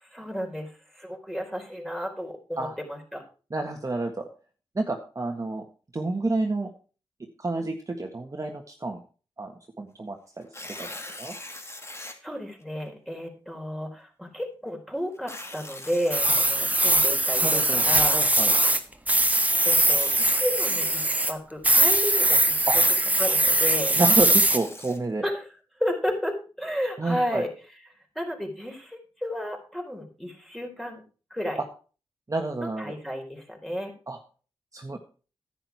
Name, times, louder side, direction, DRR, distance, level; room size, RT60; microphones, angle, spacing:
voice 1, 0.0-3.2 7.6-7.7 12.2-18.2 19.2-22.6 23.2-24.0 25.2-25.5 25.8-27.5 28.2-31.0 31.3-31.6 32.6-33.9, equal, ahead, 1 dB, 4.2 m, -32 dB
voice 2, 3.5-4.2 4.7-5.6 5.9-6.7 7.4-9.0 9.4-9.5 9.8-10.9 11.2-11.3 16.3-16.4 17.4-17.8 18.1-18.5 22.7-22.8 24.0-25.2 27.0-27.4 32.3-32.9 34.1-34.2 34.7-35.0, right 2 dB, 35° right, 3 dB, 1.6 m, -29 dB
Tearing, 10.4-12.1 12.8-12.9 15.1-17.3 19.1-20.4 23.6-25.0, left 1 dB, 25° left, 2.3 m, -41 dB
sound 1, 16.1-18.8 19.1-21.3 21.6-24.6, right 1 dB, 15° right, 1.4 m, -21 dB
10.0 x 9.0 x 4.6 m, 0.37 s
cardioid pair, 45°, 10 cm